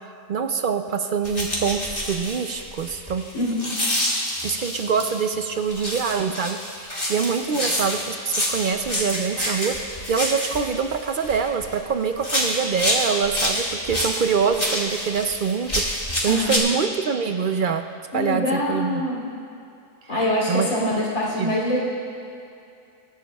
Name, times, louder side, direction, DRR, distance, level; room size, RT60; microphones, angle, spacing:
voice 1, 0.3-3.2 4.4-15.8 16.2-17.8 18.1-19.0 20.5-20.7 21.4-21.5, right 6 dB, 60° right, 7 dB, 0.5 m, -25 dB
sound 1, 1.2-5.2 5.7-11.8 12.2-16.6, left 1 dB, 30° left, 2.1 m, -27 dB
voice 2, 3.3-3.7 7.5-7.6 16.3-16.5 18.1-19.3 20.1-21.8, left 1 dB, 90° left, -4 dB, 3.4 m, -24 dB
23.5 x 11.0 x 2.3 m, 2.6 s
omnidirectional pair, 1.4 m